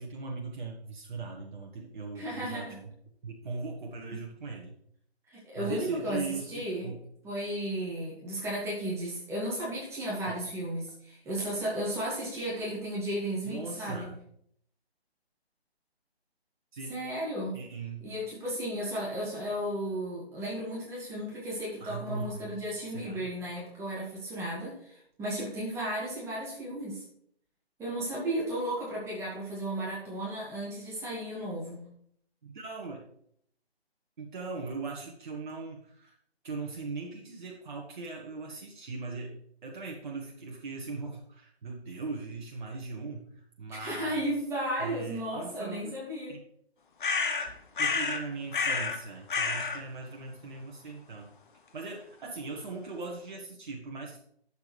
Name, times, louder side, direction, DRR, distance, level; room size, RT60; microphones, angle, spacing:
voice 1, 0.0-2.7 3.2-4.8 5.5-7.0 10.3-10.4 13.4-14.2 16.7-16.9 17.5-18.1 21.8-22.6 22.9-23.3 32.4-33.1 34.2-36.1 36.4-39.4 39.6-44.3 44.8-45.9 46.3-46.4 47.8-51.3 51.7-54.2, right 3 dB, 50° right, 0 dB, 1.4 m, -39 dB
voice 2, 2.1-2.8 5.3-6.2 6.5-6.9 7.2-14.1 16.9-17.6 18.0-27.0 27.8-31.8 43.7-46.3, right 1 dB, 10° right, -6 dB, 2.2 m, -34 dB
sound 1, 47.0-48.2 48.5-49.0 49.3-49.8, left 5 dB, 50° left, 1.2 m, -29 dB
11.5 x 6.9 x 3.3 m, 0.68 s
figure-of-eight pair, 145°, 32 cm